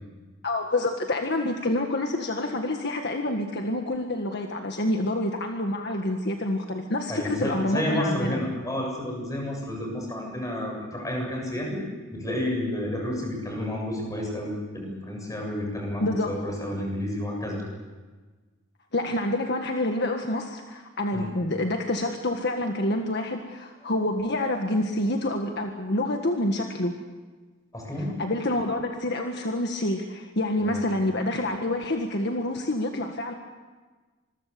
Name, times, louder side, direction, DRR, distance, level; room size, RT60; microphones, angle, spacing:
voice 1, 0.4-8.4 16.0-16.4 18.9-26.9 28.2-33.3, left 1 dB, 55° left, 3 dB, 1.7 m, -27 dB
voice 2, 7.1-11.8 12.1-17.6 21.1-21.3 27.7-28.2 30.6-30.8, left 1 dB, 15° left, 0 dB, 7.6 m, -30 dB
26.0 x 22.0 x 6.9 m, 1.3 s
head